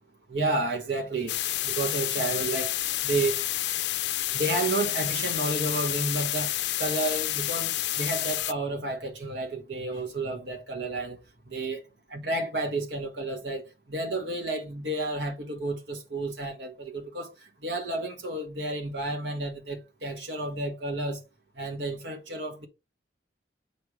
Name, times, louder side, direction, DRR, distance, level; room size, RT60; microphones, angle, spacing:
voice 1, 0.3-1.4 1.6-2.8 3.0-3.4 4.3-6.5 6.8-11.2 11.5-11.8 12.1-17.3 17.6-21.2 21.6-22.7, right 2 dB, 80° right, 1.7 m, -31 dB
sound 1, 1.3-8.5, left 14 dB, 70° left, 0.5 m, -29 dB
8.5 x 3.5 x 4.7 m
head